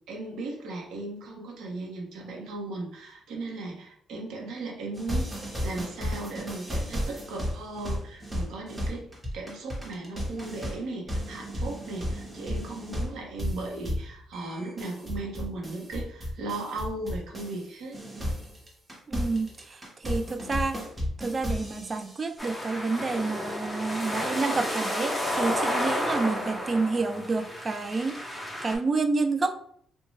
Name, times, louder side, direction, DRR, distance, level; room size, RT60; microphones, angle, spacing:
voice 1, 0.0-18.0, right 2 dB, 80° right, 0 dB, 0.8 m, -37 dB
sound 1, 4.9-17.7 17.9-22.3, equal, 20° right, 0.9 m, -34 dB
voice 2, 19.1-20.8 21.2-29.5, right 3 dB, 35° right, 8 dB, 0.3 m, -29 dB
sound 2, 22.4-28.8, equal, 5° left, 0.7 m, -31 dB
2.6 x 2.2 x 3.0 m, 0.64 s
cardioid pair, 90°, 0 cm